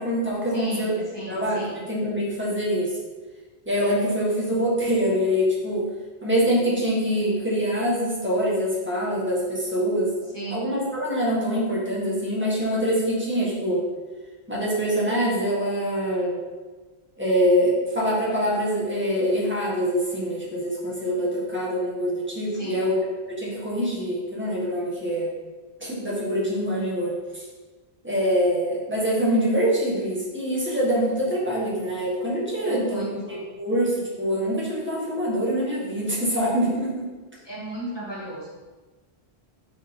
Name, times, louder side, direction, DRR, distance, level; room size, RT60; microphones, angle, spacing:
voice 1, 0.0-0.9 1.3-3.0 3.7-5.8 6.2-10.1 10.5-13.8 14.5-16.4 17.2-23.0 23.3-25.3 25.8-27.4 28.0-37.1, equal, 10° right, -6 dB, 1.9 m, -24 dB
voice 2, 0.5-1.8 10.3-10.7 22.5-22.9 32.6-33.5 37.4-38.5, right 1 dB, 20° left, -7 dB, 2.2 m, -35 dB
6.7 x 5.0 x 3.9 m, 1.3 s
omnidirectional pair, 1.1 m